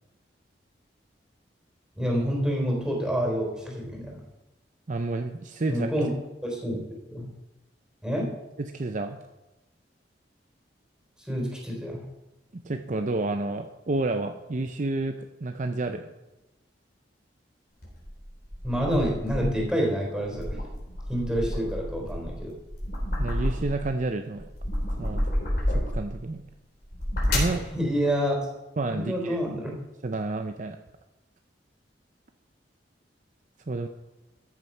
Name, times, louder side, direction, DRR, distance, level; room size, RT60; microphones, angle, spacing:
voice 1, 2.0-4.2 5.7-6.1 6.4-6.8 7.1-7.3 8.0-8.3 11.2-12.0 18.6-20.6 21.1-22.5 27.4-28.4 28.9-29.7, equal, 5° right, -1 dB, 3.6 m, -28 dB
voice 2, 4.9-5.9 8.6-9.2 12.5-16.1 23.2-24.5 25.0-25.3 25.7-26.4 27.3-27.7 28.8-29.4 30.0-30.8 33.7-33.9, right 2 dB, 45° right, 6 dB, 0.6 m, -30 dB
sound 1, 17.8-19.7 20.2-23.9 24.3-26.2 26.8-27.6, left 1 dB, 60° left, 4.0 m, -30 dB
13.5 x 7.8 x 5.5 m, 1.0 s
head